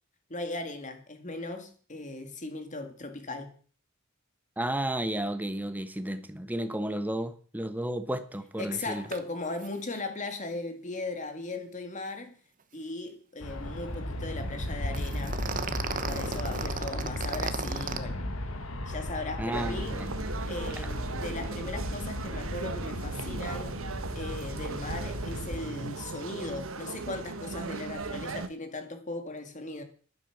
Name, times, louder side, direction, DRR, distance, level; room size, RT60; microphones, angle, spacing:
voice 1, 0.3-3.5 8.6-12.4 12.7-15.4 16.1-18.3 18.9-20.0 20.5-23.8 24.1-29.8, left 2 dB, 35° left, 2.1 m, -38 dB
voice 2, 4.6-9.0 19.4-20.1, right 1 dB, 10° right, 1.2 m, -32 dB
sound 1, 9.1-9.2 9.5-9.7 9.9-10.1 14.9-18.0, right 5 dB, 40° right, 1.0 m, -35 dB
Aircraft, 13.4-25.6, left 1 dB, 75° left, 1.9 m, -36 dB
sound 2, 19.5-28.5, right 3 dB, 70° right, 1.1 m, -37 dB
12.5 x 11.0 x 5.9 m
head